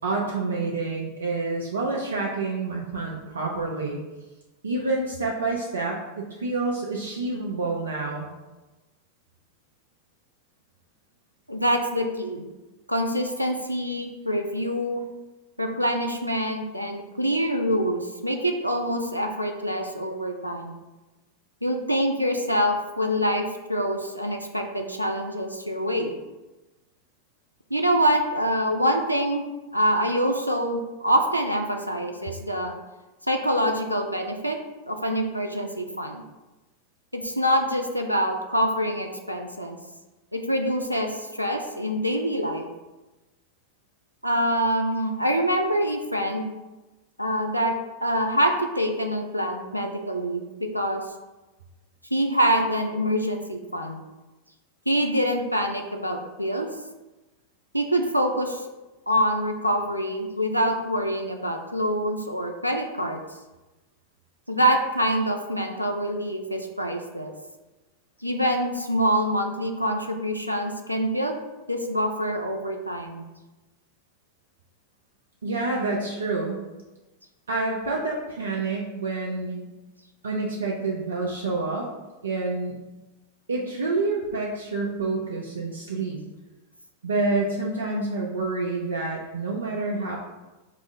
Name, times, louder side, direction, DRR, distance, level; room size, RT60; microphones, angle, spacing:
voice 1, 0.0-4.0 4.6-8.3 75.4-76.6 77.5-79.6 80.2-81.9 82.2-82.8 83.5-86.2 87.0-90.2, right 3 dB, 70° right, -1 dB, 0.4 m, -28 dB
voice 2, 11.5-12.4 12.9-15.0 15.6-20.7 21.6-23.4 23.7-26.1 27.7-29.4 29.7-32.7 33.3-34.6 34.9-36.2 37.1-39.8 40.3-42.7 44.2-46.5 47.2-47.7 48.0-51.0 52.1-54.0 54.9-56.7 57.7-58.6 59.1-63.2 64.5-67.3 68.2-71.4 71.7-73.2, equal, 90° left, 3 dB, 0.3 m, -25 dB
4.8 x 2.4 x 2.6 m, 1.1 s
figure-of-eight pair, 90°, 0 cm